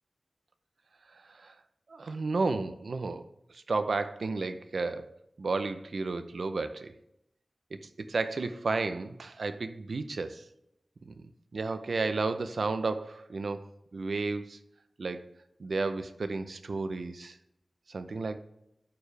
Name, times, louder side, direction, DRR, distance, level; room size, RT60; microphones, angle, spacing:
voice 1, 1.1-1.5 1.9-3.3 3.5-6.9 7.8-10.4 11.1-14.6 15.0-15.3 15.6-17.4 17.9-18.4, right 3 dB, 80° right, 10 dB, 0.6 m, -33 dB
11.5 x 4.7 x 3.3 m, 0.81 s
wide cardioid pair, 80°, 0 cm